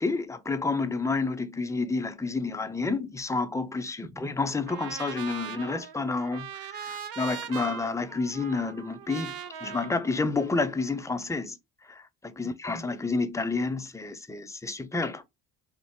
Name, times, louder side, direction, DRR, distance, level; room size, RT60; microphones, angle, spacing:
voice 1, 0.0-11.6 11.9-15.2, left 3 dB, 5° left, 0.5 m, -30 dB
Trumpet, 4.7-10.9, right 9 dB, 45° right, 0.6 m, -40 dB
3.3 x 2.5 x 3.5 m
supercardioid pair, 60°, 50 cm